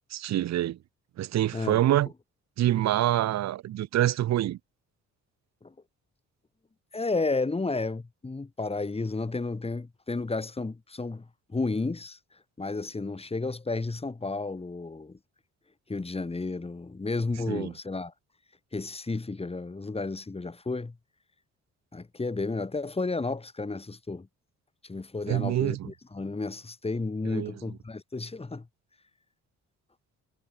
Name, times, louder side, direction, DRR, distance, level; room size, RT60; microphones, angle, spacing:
voice 1, 0.1-0.8 1.2-2.1 2.6-4.6 17.5-17.7 25.3-25.9 27.3-27.5, right 13 dB, 60° right, 0.8 m, -26 dB
voice 2, 6.9-12.2 12.6-15.2 15.9-18.1 18.7-21.0 21.9-24.3 24.8-28.7, left 3 dB, 20° left, 2.9 m, -32 dB
cardioid pair, 90°, 30 cm